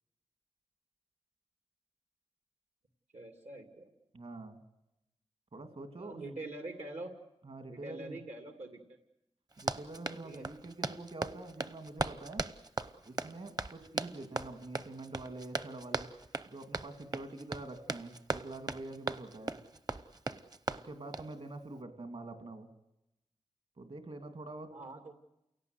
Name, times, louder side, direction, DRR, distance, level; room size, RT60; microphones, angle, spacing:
voice 1, 3.1-3.9 5.9-7.1 7.7-9.0 10.2-10.5 24.7-25.1, right 2 dB, 80° right, 6 dB, 2.6 m, -45 dB
voice 2, 4.1-4.6 5.5-6.2 7.4-8.2 9.6-12.4 13.0-16.1 16.5-19.5 20.8-22.7 23.8-24.7, right 2 dB, 60° right, 8 dB, 3.0 m, -45 dB
Run, 9.5-21.3, right 3 dB, 35° right, 0.9 m, -38 dB
28.5 x 17.5 x 8.2 m, 0.88 s
wide cardioid pair, 80°, 11 cm